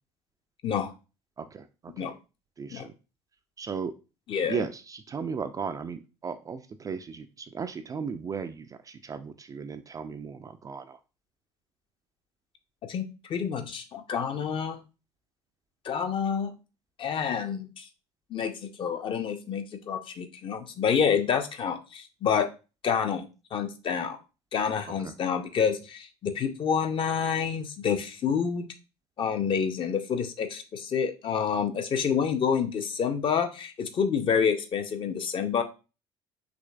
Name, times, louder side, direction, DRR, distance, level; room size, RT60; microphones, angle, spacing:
voice 1, 1.4-2.2 2.6-2.9 3.6-4.0 4.5-11.0 25.0-25.1, right 5 dB, 25° right, 8 dB, 0.4 m, -36 dB
voice 2, 4.3-4.6 12.9-14.8 15.8-16.5 17.0-17.9 18.3-22.5 22.8-23.3 23.5-24.2 24.5-28.7 29.2-35.6, left 7 dB, 35° left, 7 dB, 0.6 m, -28 dB
5.1 x 3.1 x 2.3 m, 0.31 s
figure-of-eight pair, 60°, 14 cm